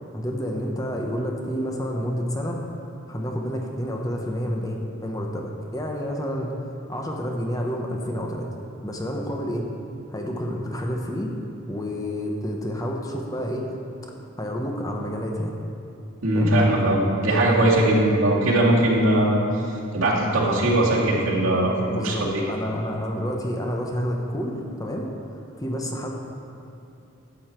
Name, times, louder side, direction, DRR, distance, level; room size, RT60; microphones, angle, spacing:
voice 1, 0.1-2.6 3.1-6.5 6.9-8.5 8.8-9.7 10.1-11.3 11.7-13.7 14.4-15.6 16.3-16.5 21.9-26.1, equal, 15° left, 1 dB, 0.9 m, -29 dB
voice 2, 16.2-19.4 19.9-21.8 22.0-22.4, right 1 dB, 85° right, -5 dB, 2.2 m, -20 dB
11.5 x 7.9 x 4.5 m, 2.8 s
head